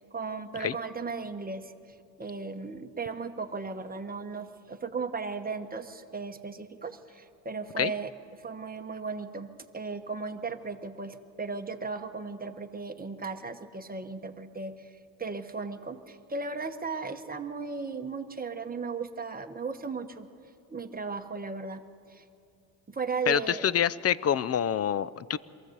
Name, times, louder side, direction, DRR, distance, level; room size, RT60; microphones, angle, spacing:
voice 1, 0.0-8.1 8.4-14.9 15.2-20.3 20.7-21.8 22.1-22.2 22.9-23.7, right 4 dB, 20° right, 6 dB, 1.1 m, -36 dB
voice 2, 23.3-25.4, left 9 dB, 35° left, 19 dB, 0.5 m, -26 dB
22.5 x 15.0 x 8.0 m, 2.5 s
cardioid pair, 95°, 46 cm